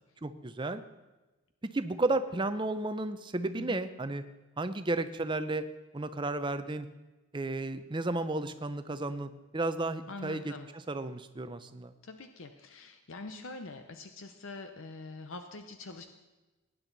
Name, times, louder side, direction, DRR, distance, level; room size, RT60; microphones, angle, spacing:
voice 1, 0.2-0.8 1.6-4.2 4.6-5.6 5.9-6.9 7.3-10.5 10.9-11.9, right 2 dB, 20° right, 11 dB, 0.5 m, -33 dB
voice 2, 10.1-10.7 12.0-16.1, left 3 dB, 60° left, 7 dB, 0.7 m, -44 dB
18.0 x 10.0 x 4.0 m, 1.1 s
head